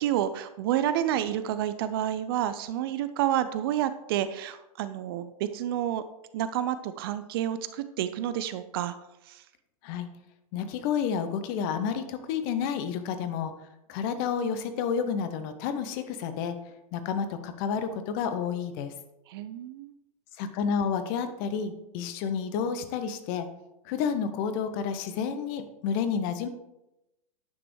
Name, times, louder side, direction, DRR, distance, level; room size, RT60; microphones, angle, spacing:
voice 1, 0.0-6.0 6.3-8.9 9.3-9.4 19.3-19.9, right 11 dB, 40° right, 12 dB, 0.4 m, -29 dB
voice 2, 10.5-13.5 13.9-16.6 16.9-18.9 20.4-23.5 23.8-26.5, left 7 dB, 35° left, 10 dB, 0.8 m, -30 dB
9.9 x 5.9 x 3.2 m, 0.91 s
figure-of-eight pair, 105°, 19 cm